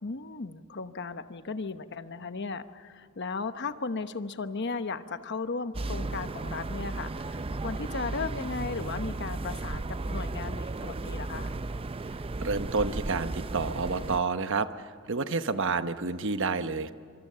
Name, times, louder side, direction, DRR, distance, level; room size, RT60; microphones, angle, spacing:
voice 1, 0.0-11.5, left 4 dB, 55° left, 10 dB, 1.0 m, -36 dB
sound 1, 5.7-14.2, right 2 dB, 25° right, 0.5 m, -35 dB
voice 2, 12.4-16.9, right 4 dB, 60° right, 10 dB, 1.0 m, -29 dB
26.0 x 24.5 x 6.8 m, 2.2 s
head